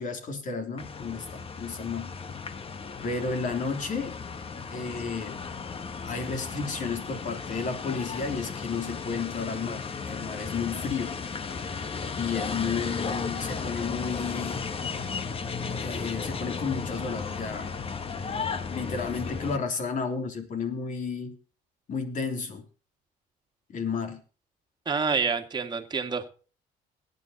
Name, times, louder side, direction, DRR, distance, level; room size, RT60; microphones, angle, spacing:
voice 1, 0.0-2.1 3.0-4.1 4.7-5.4 6.0-11.2 12.2-14.7 15.8-17.7 18.6-21.4 21.9-22.7 23.7-24.2, left 5 dB, 50° left, 5 dB, 3.2 m, -32 dB
sound 1, 0.8-19.6, left 5 dB, 35° left, 1.3 m, -35 dB
voice 2, 24.9-26.3, right 5 dB, 25° right, 4 dB, 2.1 m, -27 dB
20.5 x 9.6 x 2.9 m, 0.38 s
cardioid pair, 110°, 17 cm